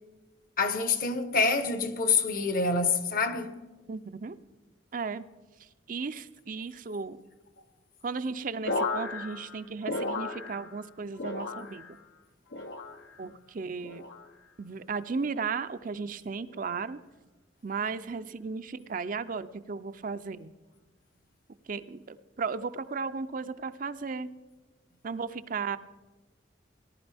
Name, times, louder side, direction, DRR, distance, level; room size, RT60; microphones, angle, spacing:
voice 1, 0.6-3.5, left 4 dB, 50° left, 1.0 m, -26 dB
voice 2, 3.9-4.4 4.9-5.2 5.9-7.2 8.0-11.8 13.2-14.0 14.6-17.0 17.6-20.5 21.7-24.3 25.0-25.8, right 5 dB, 45° right, 0.5 m, -35 dB
sound 1, 8.6-10.9 11.1-12.0 12.5-13.2 13.8-14.3 15.2-15.5 16.5-16.8, left 3 dB, 85° left, 1.1 m, -35 dB
18.5 x 11.0 x 3.4 m
head